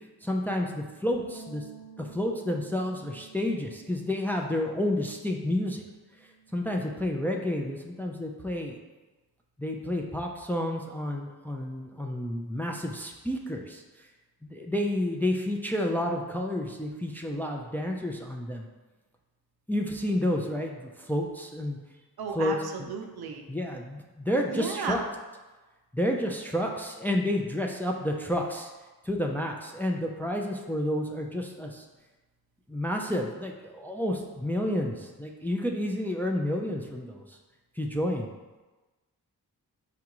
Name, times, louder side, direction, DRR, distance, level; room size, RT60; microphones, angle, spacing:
voice 1, 0.2-1.6 2.0-5.8 6.5-8.8 9.6-13.8 14.4-18.7 19.7-21.8 22.3-22.9 23.5-25.0 25.9-28.7 29.0-31.9 32.7-37.4 37.8-38.3, left 1 dB, 5° left, 1 dB, 0.4 m, -30 dB
sound 1, 1.1-7.4, right 5 dB, 50° left, 1.2 m, -52 dB
voice 2, 22.2-23.4 24.5-25.0, right 5 dB, 65° right, 3 dB, 0.6 m, -34 dB
4.9 x 2.3 x 2.9 m, 1.2 s
cardioid pair, 45°, 40 cm